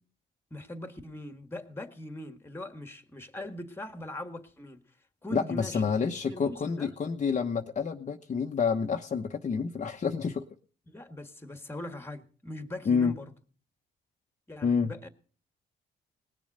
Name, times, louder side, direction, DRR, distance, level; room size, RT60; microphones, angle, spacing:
voice 1, 0.5-4.8 5.2-6.9 10.9-13.3 14.5-15.1, left 1 dB, 10° left, 1.8 m, -41 dB
voice 2, 5.3-10.4 12.9-13.1 14.6-14.9, left 5 dB, 40° left, 1.0 m, -28 dB
19.0 x 7.1 x 6.7 m
cardioid pair, 90°, 20 cm